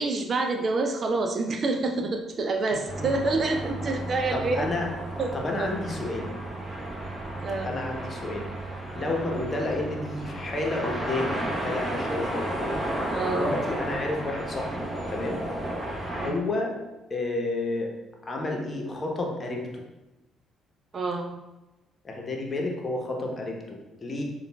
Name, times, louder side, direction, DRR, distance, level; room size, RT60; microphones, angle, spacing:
voice 1, 0.0-4.7 5.2-5.7 7.4-7.7 13.1-13.5 16.1-16.4 20.9-21.4, right 3 dB, 45° right, 5 dB, 0.4 m, -27 dB
sound 1, 2.8-16.3, right 1 dB, 20° right, 0.9 m, -33 dB
voice 2, 4.3-4.9 5.3-6.3 7.6-8.4 8.9-12.8 13.2-14.8 15.1-15.4 16.2-16.7 17.1-17.9 18.2-19.8 22.0-24.2, left 2 dB, 35° left, 0 dB, 0.9 m, -30 dB
6.8 x 2.4 x 2.2 m, 1.0 s
hypercardioid pair, 50°, 0 cm